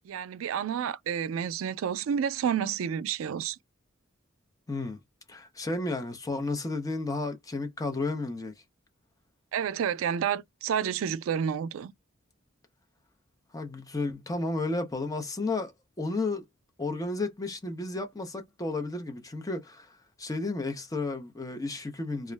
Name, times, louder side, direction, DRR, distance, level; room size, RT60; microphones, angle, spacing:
voice 1, 0.0-3.6 9.5-11.9, right 8 dB, 85° right, 0.3 m, -30 dB
voice 2, 4.7-5.0 5.3-8.5 13.5-15.7 16.0-16.5 16.8-19.9 20.2-22.3, left 2 dB, 15° left, 0.5 m, -32 dB
2.4 x 2.0 x 3.2 m
head